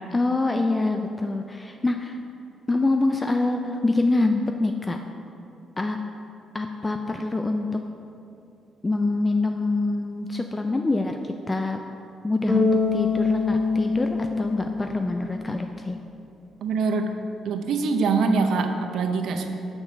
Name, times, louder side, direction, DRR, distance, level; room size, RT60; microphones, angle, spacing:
voice 1, 0.1-2.2 2.7-5.0 5.8-6.0 6.5-7.7 8.8-11.8 12.2-16.0, left 2 dB, 20° left, 5 dB, 0.3 m, -25 dB
Bass guitar, 12.5-15.6, left 4 dB, 35° left, 1.4 m, -25 dB
voice 2, 16.6-17.2 17.4-19.5, right 4 dB, 75° right, 5 dB, 0.6 m, -24 dB
6.5 x 4.4 x 6.1 m, 2.7 s
cardioid pair, 90°, 0 cm